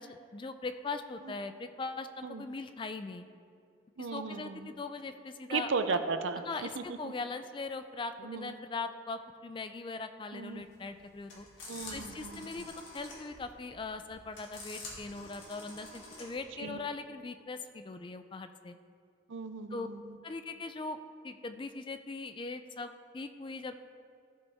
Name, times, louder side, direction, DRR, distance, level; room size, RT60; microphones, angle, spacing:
voice 1, 0.0-3.3 4.0-6.0 6.5-11.5 11.9-18.8 19.7-19.9 20.2-21.0 21.2-23.8, left 3 dB, 25° left, 9 dB, 0.3 m, -40 dB
voice 2, 4.0-4.7 5.5-7.1 8.2-8.5 10.3-10.6 11.7-12.7 16.6-16.8 19.3-20.2, right 4 dB, 70° right, 9 dB, 0.5 m, -36 dB
sound 1, 10.5-16.4, left 2 dB, 70° left, 2.2 m, -48 dB
15.0 x 5.3 x 3.5 m, 2.4 s
head